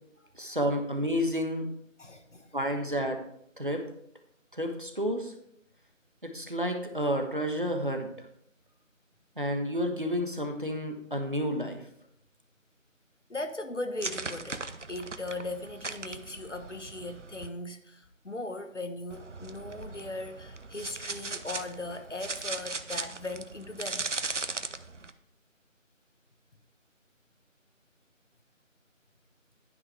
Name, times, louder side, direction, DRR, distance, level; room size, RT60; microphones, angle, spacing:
voice 1, 0.4-1.7 2.5-3.2 3.6-3.9 4.5-5.3 6.2-8.1 9.4-11.8, equal, 40° right, 4 dB, 1.4 m, -30 dB
voice 2, 2.0-2.5 13.3-24.1, left 2 dB, 60° left, 8 dB, 1.3 m, -38 dB
sound 1, 14.0-17.5 19.1-25.1, right 3 dB, 65° right, 0.8 m, -38 dB
11.0 x 9.4 x 3.4 m, 0.70 s
figure-of-eight pair, 175°, 40 cm